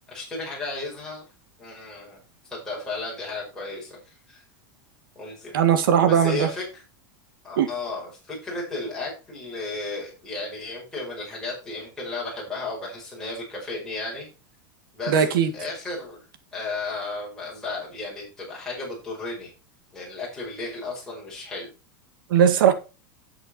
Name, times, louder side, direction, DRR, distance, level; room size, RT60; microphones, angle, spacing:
voice 1, 0.1-1.2 1.6-4.4 5.2-5.6 6.1-6.8 7.4-14.3 14.9-16.2 16.5-19.5 19.9-21.7, left 2 dB, 5° left, 5.2 m, -34 dB
voice 2, 5.5-6.5 7.6-7.7 15.1-15.5 22.3-22.7, right 8 dB, 85° right, 1.9 m, -18 dB
9.5 x 8.0 x 4.2 m
supercardioid pair, 180°, 11 cm